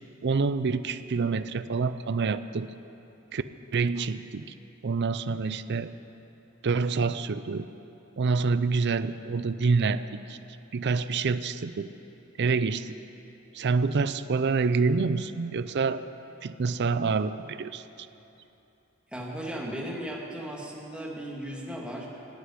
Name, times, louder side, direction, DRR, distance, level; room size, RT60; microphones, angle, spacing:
voice 1, 0.2-2.7 3.3-3.4 3.7-4.5 4.8-5.9 6.6-7.7 8.2-10.4 10.7-11.9 12.4-12.9 13.5-16.1 16.4-18.1, right 4 dB, 55° right, 13 dB, 0.5 m, -27 dB
voice 2, 19.1-22.1, right 1 dB, 5° right, -2 dB, 2.3 m, -36 dB
17.5 x 8.2 x 9.7 m, 3.0 s
head